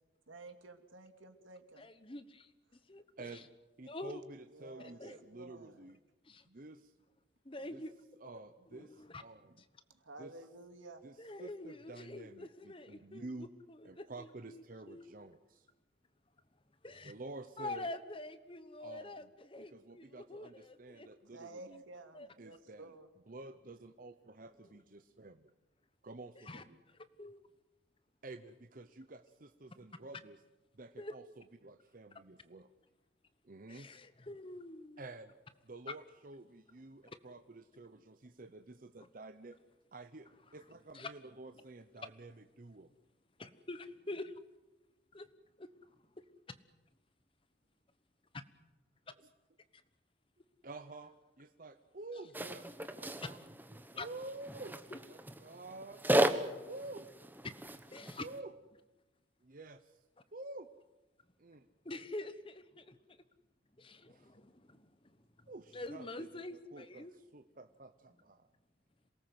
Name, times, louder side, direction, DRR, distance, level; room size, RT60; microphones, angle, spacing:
voice 1, 0.3-1.9 4.5-5.1 5.4-5.7 10.0-11.0 21.3-23.1, right 2 dB, 90° right, 7 dB, 2.6 m, -52 dB
voice 2, 1.8-2.5 2.9-3.4 3.9-4.2 4.8-5.2 6.2-6.5 7.4-7.9 8.7-9.2 9.6-9.7 11.2-15.1 16.8-17.1 17.6-21.1 22.1-22.3 26.4-27.4 31.0-31.1 33.7-35.0 37.0-37.2 39.0-39.1 40.5-40.6 40.9-41.1 43.4-44.4 45.1-45.3 45.6-45.7 49.7-49.8 53.9-54.1 54.9-55.0 57.9-58.2 61.8-63.2 63.8-67.1, left 2 dB, 25° left, 12 dB, 1.1 m, -46 dB
voice 3, 3.2-3.5 3.8-6.0 6.5-6.9 7.7-7.8 8.2-9.5 10.2-10.3 11.0-13.5 13.8-15.7 17.0-17.9 18.8-19.3 19.6-21.8 22.4-25.5 26.0-26.8 28.2-30.4 30.7-32.7 33.4-33.9 35.0-35.3 35.6-39.6 39.9-42.9 50.6-52.7 52.9-53.4 53.9-54.8 55.0-56.0 56.3-57.1 58.2-58.5 59.4-60.0 60.3-60.7 61.4-61.7 64.1-64.3 65.5-68.5, right 2 dB, 45° right, 9 dB, 0.8 m, -50 dB
sound 1, 52.3-58.4, right 1 dB, 10° right, 1.1 m, -36 dB
27.0 x 18.5 x 7.8 m, 1.1 s
head